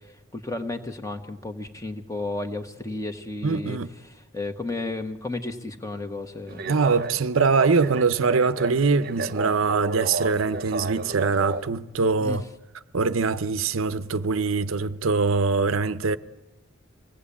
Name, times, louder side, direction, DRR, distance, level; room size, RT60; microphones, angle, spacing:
voice 1, 0.3-6.6 12.2-12.4, left 2 dB, 15° left, 1.5 m, -33 dB
voice 2, 3.4-3.9 6.6-12.4 12.9-16.2, right 4 dB, 70° right, 0.7 m, -23 dB
sound 1, 6.5-11.6, right 3 dB, 45° right, 0.9 m, -32 dB
25.5 x 18.0 x 8.5 m
head